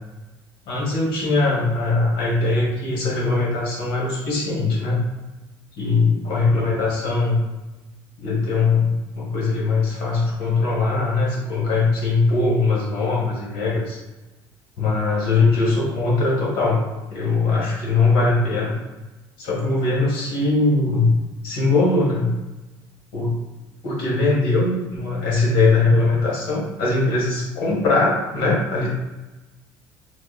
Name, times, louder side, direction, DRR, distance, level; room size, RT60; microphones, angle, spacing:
voice 1, 0.7-5.0 5.8-7.4 8.2-14.0 14.8-16.8 17.1-18.7 19.4-21.1 21.4-22.3 23.1-23.4 23.8-28.9, left 3 dB, 70° left, -4 dB, 1.0 m, -21 dB
3.4 x 2.1 x 2.3 m, 1.1 s
cardioid pair, 175°, 9 cm